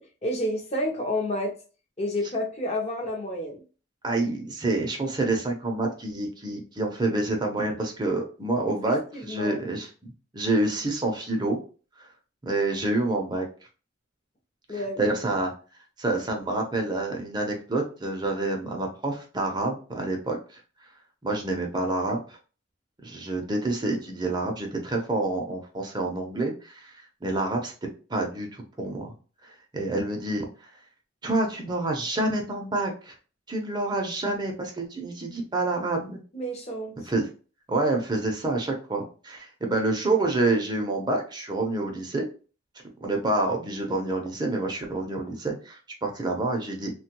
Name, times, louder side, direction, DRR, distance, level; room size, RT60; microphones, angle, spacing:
voice 1, 0.0-1.5 2.0-3.6 8.8-9.6 14.7-15.0 36.3-36.9, left 1 dB, 35° left, 2 dB, 0.6 m, -30 dB
voice 2, 4.0-11.6 12.0-12.1 12.4-13.5 14.7-15.5 16.0-20.6 21.2-22.4 23.0-26.9 27.2-27.7 28.1-29.1 29.4-30.5 31.2-33.1 33.5-36.2 37.1-37.3 37.7-42.3 43.0-46.9, right 2 dB, 20° right, 1 dB, 0.6 m, -28 dB
3.1 x 2.2 x 2.9 m, 0.36 s
head